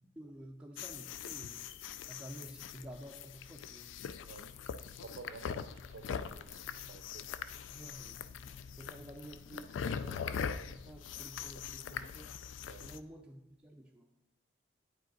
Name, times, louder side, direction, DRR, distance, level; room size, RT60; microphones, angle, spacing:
voice 1, 0.2-1.6 2.0-3.9 7.7-8.4 8.8-12.3 12.8-14.1, equal, 5° right, -1 dB, 0.5 m, -51 dB
sound 1, 0.8-13.0, left 7 dB, 75° left, 0.3 m, -42 dB
voice 2, 4.3-7.5 12.7-12.9, right 4 dB, 75° right, 10 dB, 0.5 m, -52 dB
9.0 x 5.1 x 3.9 m, 0.85 s
head